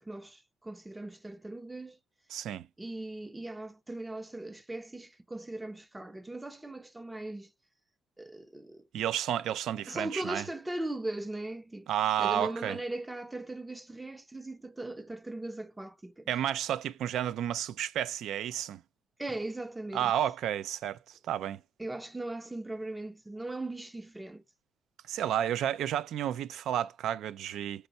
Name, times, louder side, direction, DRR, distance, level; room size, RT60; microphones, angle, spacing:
voice 1, 0.0-2.0 2.8-7.5 8.2-8.8 9.9-11.9 12.2-16.3 19.2-20.1 21.8-24.4, right 2 dB, 15° right, 0.5 m, -39 dB
voice 2, 2.3-2.7 8.9-10.5 11.9-12.8 16.3-18.8 19.9-21.0 21.3-21.6 25.1-27.9, right 11 dB, 80° right, 0.3 m, -31 dB
5.4 x 4.5 x 4.1 m
cardioid pair, 90°, 0 cm